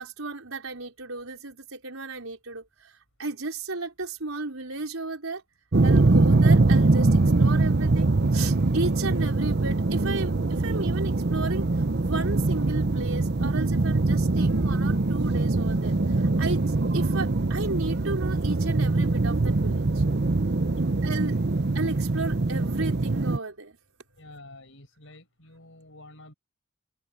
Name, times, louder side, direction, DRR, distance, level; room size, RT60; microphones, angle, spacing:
voice 1, 0.0-5.4 5.8-11.6 12.0-20.0 21.0-21.4 21.7-23.8, right 3 dB, 80° right, 4.4 m, -34 dB
sound 1, 5.7-23.4, right 2 dB, 55° right, 0.8 m, -23 dB
voice 2, 20.8-21.4 24.2-26.3, left 2 dB, 65° left, 7.0 m, -49 dB
head